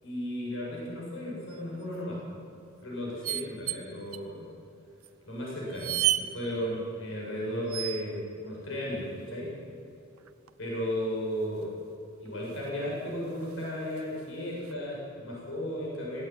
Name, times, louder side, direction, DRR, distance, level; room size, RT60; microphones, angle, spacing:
voice 1, 0.0-2.2 2.8-4.5 5.3-9.5 10.6-11.7 12.2-16.3, equal, 60° left, -4 dB, 7.8 m, -35 dB
sound 1, 1.5-1.8 3.2-3.8 4.1-4.2 5.0-5.1 5.7-6.3 7.7-8.2 10.2-10.7 12.3-12.4 12.6-12.7 13.4-14.2 14.6-14.7, right 14 dB, 85° right, 1.0 m, -31 dB
19.0 x 17.5 x 9.9 m, 2.6 s
head